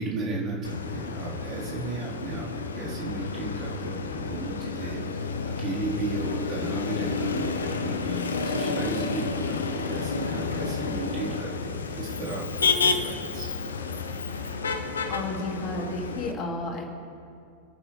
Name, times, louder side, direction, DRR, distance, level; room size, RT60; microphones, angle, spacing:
voice 1, 0.0-5.0 5.6-11.3 11.6-13.5, right 2 dB, 35° right, -6 dB, 4.0 m, -34 dB
Motor vehicle (road), 0.6-16.3, left 4 dB, 70° left, 0.9 m, -30 dB
voice 2, 15.1-16.8, left 2 dB, 35° left, 0 dB, 2.5 m, -32 dB
29.0 x 9.9 x 3.4 m, 2.4 s
figure-of-eight pair, 90°, 0 cm